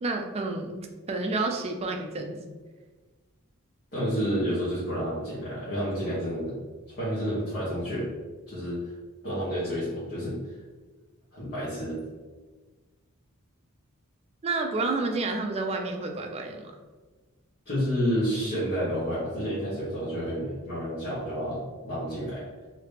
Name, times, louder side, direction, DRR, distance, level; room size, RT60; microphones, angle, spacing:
voice 1, 0.0-2.4 14.4-16.7, right 3 dB, 30° right, 3 dB, 0.4 m, -30 dB
voice 2, 3.9-6.5 7.0-8.1 8.5-8.9 9.2-10.6 11.3-12.0 17.6-22.4, equal, 45° left, -10 dB, 1.2 m, -30 dB
3.0 x 2.8 x 3.3 m, 1.3 s
head